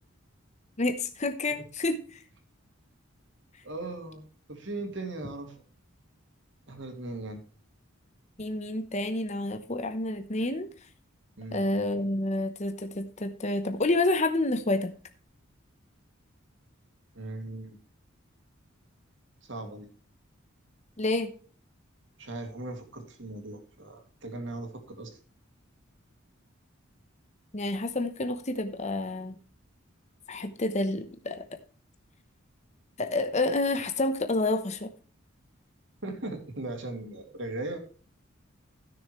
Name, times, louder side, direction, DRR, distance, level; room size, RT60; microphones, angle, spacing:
voice 1, 0.8-2.2 8.4-10.7 11.5-14.9 21.0-21.3 27.5-29.4 30.3-31.4 33.0-34.9, left 2 dB, 35° left, 7 dB, 0.9 m, -29 dB
voice 2, 3.6-4.2 4.5-5.6 6.7-7.4 11.4-11.7 17.1-17.8 19.4-19.9 22.2-25.2 36.0-37.8, right 2 dB, 60° right, 4 dB, 2.6 m, -38 dB
15.5 x 6.6 x 3.1 m, 0.42 s
head